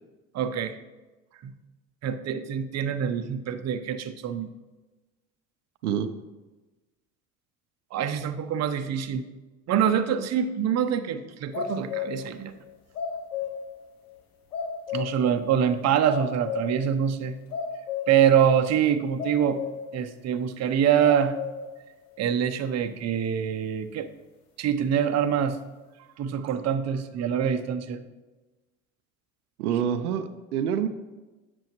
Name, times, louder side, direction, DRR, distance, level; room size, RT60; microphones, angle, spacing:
voice 1, 0.3-0.8 1.4-1.5 2.0-4.5 7.9-9.3 9.7-12.5 14.9-17.4 18.1-19.6 19.9-21.4 22.2-24.1 24.6-25.6 26.2-28.0, right 8 dB, 40° right, 9 dB, 0.6 m, -25 dB
sound 1, 11.5-12.4 12.6-13.8 14.1-14.2 14.5-15.4 15.6-15.8 16.1-16.9 17.2-18.3 18.6-18.7 19.2-20.0 20.3-20.4 21.0-21.8, left 7 dB, 75° left, 1.2 m, -33 dB
voice 2, 29.6-30.9, right 8 dB, 85° right, 9 dB, 0.5 m, -26 dB
7.7 x 6.8 x 3.0 m, 1.2 s
hypercardioid pair, 65°, 44 cm